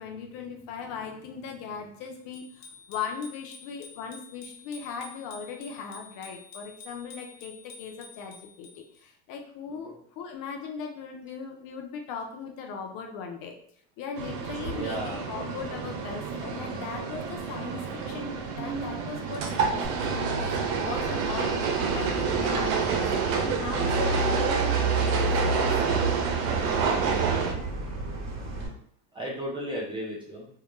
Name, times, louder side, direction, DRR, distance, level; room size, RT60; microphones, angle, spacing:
voice 1, 0.0-8.7 9.0-13.5 14.0-20.5 20.8-25.7, left 6 dB, 45° left, 3 dB, 0.5 m, -38 dB
Bicycle bell, 2.3-9.0, left 4 dB, 65° left, 0.9 m, -49 dB
sound 1, 14.2-27.5, right 5 dB, 65° right, 0.6 m, -28 dB
voice 2, 14.7-15.3 27.3-27.6 29.1-30.5, right 1 dB, 10° right, -4 dB, 0.5 m, -35 dB
sound 2, 19.8-28.7, right 3 dB, 35° right, 0.9 m, -31 dB
2.2 x 2.1 x 2.9 m, 0.62 s
hypercardioid pair, 100°, 48 cm